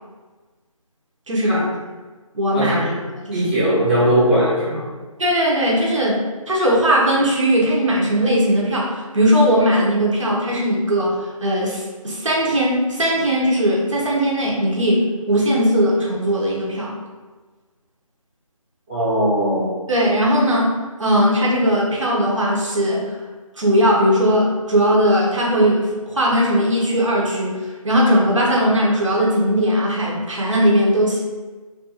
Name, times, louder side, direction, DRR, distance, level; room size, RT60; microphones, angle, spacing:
voice 1, 1.3-1.7 2.3-2.9 3.3-3.5 5.2-17.0 19.9-23.2 23.6-31.2, equal, 60° right, -4 dB, 0.7 m, -19 dB
voice 2, 2.5-2.9 3.3-4.9 18.9-19.7, right 1 dB, 20° right, -10 dB, 0.7 m, -19 dB
2.5 x 2.4 x 2.7 m, 1.3 s
figure-of-eight pair, 165°, 18 cm